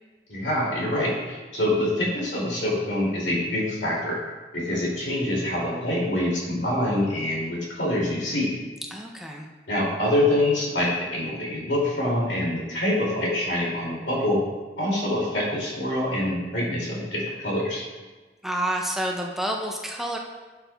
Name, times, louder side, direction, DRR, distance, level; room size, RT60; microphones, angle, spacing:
voice 1, 0.3-4.2 4.5-8.5 9.7-14.4 14.8-17.8, left 1 dB, 75° left, -4 dB, 2.5 m, -25 dB
voice 2, 8.9-9.5 18.4-20.2, right 1 dB, ahead, 0 dB, 0.5 m, -29 dB
11.5 x 6.1 x 2.3 m, 1.3 s
head